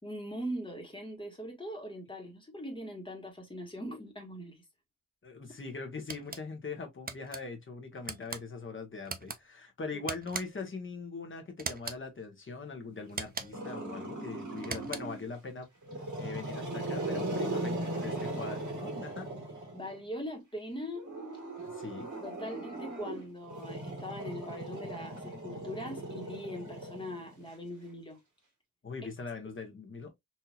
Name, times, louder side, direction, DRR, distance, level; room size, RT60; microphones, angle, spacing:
voice 1, 0.0-4.6 9.9-10.0 19.3-19.4 19.7-21.1 22.2-28.2, equal, 15° left, 1.4 m, -41 dB
voice 2, 5.2-15.7 16.2-19.3 21.6-22.1 28.8-30.2, left 4 dB, 35° left, 1.0 m, -41 dB
sound 1, 6.1-6.4 7.1-7.4 8.0-8.4 9.0-9.4 10.1-10.7 11.6-12.0 13.1-13.7 14.6-15.2, right 4 dB, 30° right, 0.4 m, -40 dB
Growling, 13.5-15.3 15.8-20.0 21.0-27.5, right 2 dB, 60° right, 2.3 m, -38 dB
4.3 x 2.7 x 2.3 m
wide cardioid pair, 155°, 33 cm